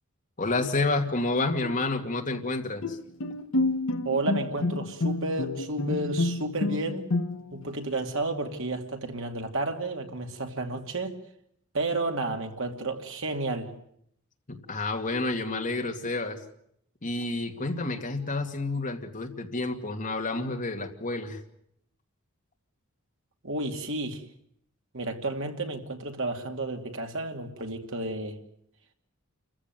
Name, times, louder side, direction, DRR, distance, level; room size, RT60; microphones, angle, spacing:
voice 1, 0.4-3.0 14.5-16.4 17.0-21.4, left 2 dB, 40° left, 3 dB, 2.4 m, -29 dB
Bowed string instrument, 2.8-7.7, left 2 dB, 65° left, 0.9 m, -29 dB
voice 2, 4.0-7.1 7.5-11.2 11.7-13.7 23.4-24.2 24.9-28.4, right 2 dB, 60° right, 4 dB, 2.6 m, -31 dB
28.0 x 15.0 x 9.4 m, 0.72 s
head